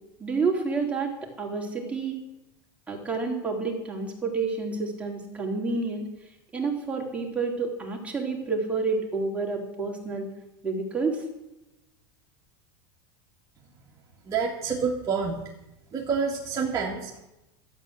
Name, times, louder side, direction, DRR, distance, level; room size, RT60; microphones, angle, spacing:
voice 1, 0.2-2.2 2.9-6.1 6.5-10.3 10.6-11.2, right 4 dB, 10° right, -1 dB, 3.4 m, -29 dB
voice 2, 14.3-15.4 15.9-17.2, right 5 dB, 25° right, -3 dB, 2.2 m, -28 dB
13.0 x 8.3 x 7.9 m, 0.94 s
supercardioid pair, 125°, 12 cm